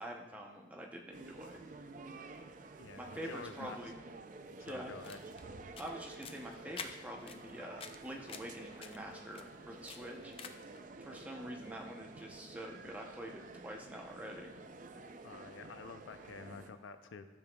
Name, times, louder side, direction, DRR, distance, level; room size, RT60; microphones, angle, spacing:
voice 1, 0.0-1.6 3.0-3.9 4.6-4.9 5.8-10.3 11.0-14.5, equal, 10° right, 0 dB, 0.7 m, -46 dB
sound 1, 1.1-16.7, right 3 dB, 45° right, 0.4 m, -51 dB
voice 2, 2.8-3.9 4.6-5.2 15.2-17.4, left 4 dB, 85° left, 9 dB, 0.5 m, -49 dB
sound 2, 4.9-10.8, left 5 dB, 30° left, 0.4 m, -51 dB
13.0 x 6.9 x 2.3 m, 1.4 s
head